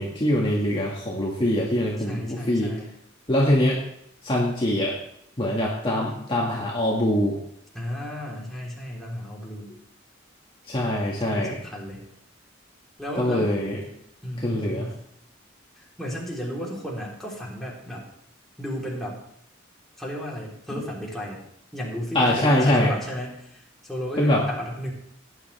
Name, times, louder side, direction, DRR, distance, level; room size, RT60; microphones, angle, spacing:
voice 1, 0.0-2.7 3.3-3.8 4.2-4.9 5.4-7.4 10.7-11.5 13.2-13.8 14.4-14.9 22.2-22.9 24.2-24.4, left 1 dB, 25° left, -4 dB, 2.0 m, -23 dB
voice 2, 2.0-2.9 7.7-9.7 11.3-12.0 13.0-13.5 14.2-15.0 15.8-18.1 18.6-19.2 20.0-21.4 21.7-24.9, equal, ahead, -5 dB, 3.6 m, -33 dB
18.0 x 9.9 x 3.5 m, 0.72 s
head